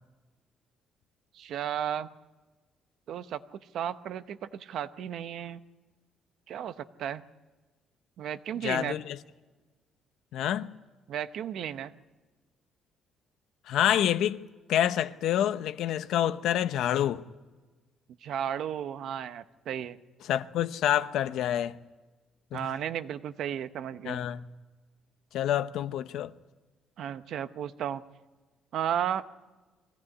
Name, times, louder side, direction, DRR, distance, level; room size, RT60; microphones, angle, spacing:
voice 1, 1.3-2.1 3.1-5.6 6.5-7.2 8.2-9.0 11.1-11.9 18.2-20.0 22.5-24.3 27.0-28.0 28.7-29.2, right 9 dB, 55° right, 0.9 m, -34 dB
voice 2, 8.6-9.2 10.3-10.7 13.7-14.4 14.7-17.2 20.2-21.8 22.5-22.6 24.0-24.4 25.3-26.3, left 11 dB, 65° left, 0.8 m, -27 dB
23.5 x 17.0 x 9.7 m
cardioid pair, 180°, 0 cm